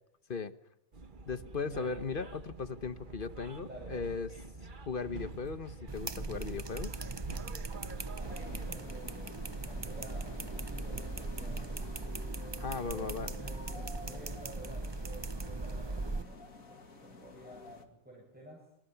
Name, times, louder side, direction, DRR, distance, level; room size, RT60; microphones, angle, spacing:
sound 1, 0.9-8.8, right 3 dB, 40° right, 1.4 m, -46 dB
voice 1, 1.3-4.3 4.8-6.9 12.6-13.3, left 5 dB, 45° left, 12 dB, 1.1 m, -37 dB
voice 2, 3.7-4.1 8.0-11.9 12.6-18.6, right 1 dB, 5° right, -2 dB, 7.8 m, -52 dB
sound 2, 5.9-16.2, right 3 dB, 25° right, 0.8 m, -39 dB
sound 3, 8.2-17.9, left 4 dB, 85° left, 2.8 m, -50 dB
26.0 x 25.0 x 5.9 m, 0.78 s
omnidirectional pair, 1.4 m